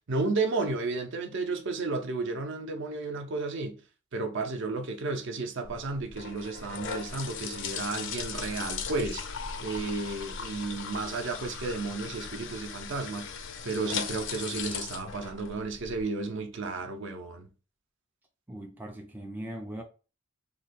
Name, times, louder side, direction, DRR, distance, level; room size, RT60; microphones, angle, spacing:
voice 1, 0.1-3.8 4.1-9.2 9.6-13.3 13.6-17.5, right 3 dB, 60° right, 0.6 m, -33 dB
sound 1, 5.6-16.0, left 6 dB, 55° left, 0.4 m, -38 dB
voice 2, 18.5-19.8, right 1 dB, 10° right, 0.3 m, -39 dB
2.9 x 2.2 x 4.1 m
head